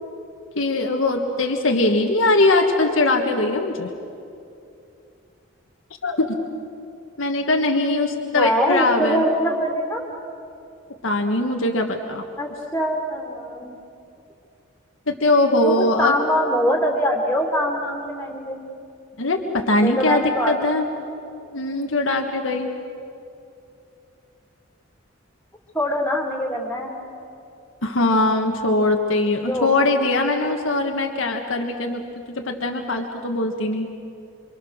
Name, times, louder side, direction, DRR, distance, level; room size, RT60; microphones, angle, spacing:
voice 1, 0.5-3.9 6.0-6.4 7.2-9.3 11.0-12.3 15.1-16.1 19.2-20.9 21.5-22.7 27.8-32.0 32.3-33.9, left 2 dB, 75° left, 2 dB, 1.6 m, -21 dB
voice 2, 8.3-10.0 12.4-13.7 15.5-18.6 19.8-20.8 25.7-26.9 29.4-29.9, equal, 10° left, 0 dB, 2.9 m, -23 dB
28.5 x 25.0 x 6.5 m, 2.6 s
head